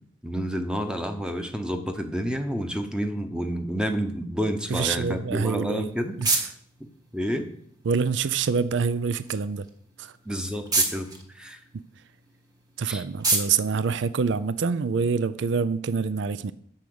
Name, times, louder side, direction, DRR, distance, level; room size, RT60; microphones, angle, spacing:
voice 1, 0.2-6.2 7.1-7.5 10.2-11.1 11.3-11.6 12.9-13.0, equal, 5° right, 6 dB, 0.9 m, -29 dB
voice 2, 4.7-5.9 6.2-6.5 7.8-9.7 10.0-10.2 11.7-11.8 12.8-16.5, right 5 dB, 60° right, 15 dB, 0.4 m, -26 dB
sound 1, 5.4-14.9, right 3 dB, 20° right, 1.4 m, -32 dB
8.6 x 6.3 x 7.8 m, 0.64 s
head